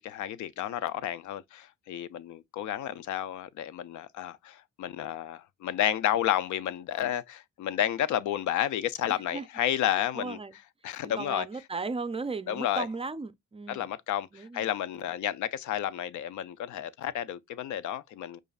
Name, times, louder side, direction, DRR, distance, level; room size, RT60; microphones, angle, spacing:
voice 1, 0.0-10.4 10.8-11.5 12.5-12.9 13.7-18.4, left 11 dB, 75° left, 0.5 m, -31 dB
voice 2, 9.1-9.5 10.1-10.5 11.0-13.9 14.3-14.7, right 4 dB, 20° right, 0.4 m, -36 dB
6.4 x 2.4 x 2.4 m
cardioid pair, 90°, 30 cm